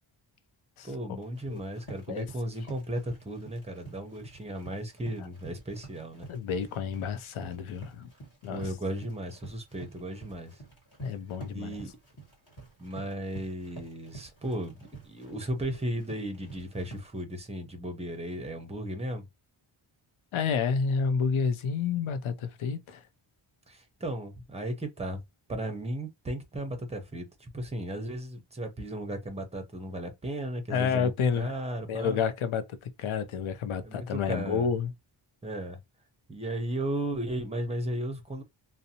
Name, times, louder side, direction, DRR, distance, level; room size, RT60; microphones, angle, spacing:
voice 1, 0.8-6.3 8.5-10.6 11.5-11.9 12.8-19.3 23.7-25.2 25.5-32.2 33.8-34.7 35.4-35.8 36.3-38.4, right 1 dB, 15° right, 0.5 m, -35 dB
Run, 1.2-17.2, right 3 dB, 50° left, 1.6 m, -49 dB
voice 2, 6.3-8.1 8.4-8.6 11.0-11.8 20.3-23.0 30.7-31.5 31.9-34.9, left 6 dB, 75° left, 0.6 m, -29 dB
2.6 x 2.0 x 2.7 m
wide cardioid pair, 150°, 50 cm